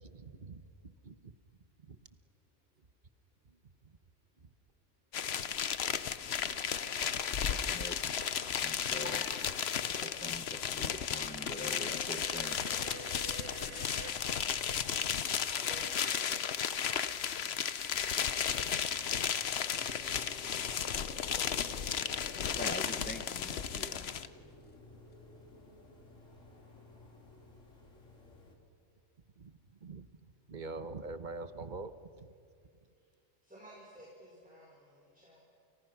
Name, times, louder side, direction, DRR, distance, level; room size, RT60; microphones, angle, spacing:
voice 1, 0.0-1.3 1.8-2.0 3.4-3.6 3.8-3.9 4.4-4.5 29.4-32.3, right 3 dB, 40° right, 11 dB, 1.2 m, -45 dB
sound 1, 5.1-24.3, left 8 dB, 55° left, 1.0 m, -34 dB
voice 2, 7.7-8.2 8.6-9.2 10.0-12.6 22.3-24.1, left 1 dB, 10° left, 7 dB, 0.8 m, -44 dB
sound 2, 12.1-14.2, right 6 dB, 60° right, 1.4 m, -48 dB
voice 3, 15.5-16.8 19.5-20.7 21.0-22.5 23.2-24.1 33.4-35.4, equal, 5° right, -4 dB, 5.1 m, -53 dB
sound 3, 19.7-28.6, left 2 dB, 80° left, 3.6 m, -55 dB
29.5 x 29.5 x 6.0 m, 2.2 s
omnidirectional pair, 1.3 m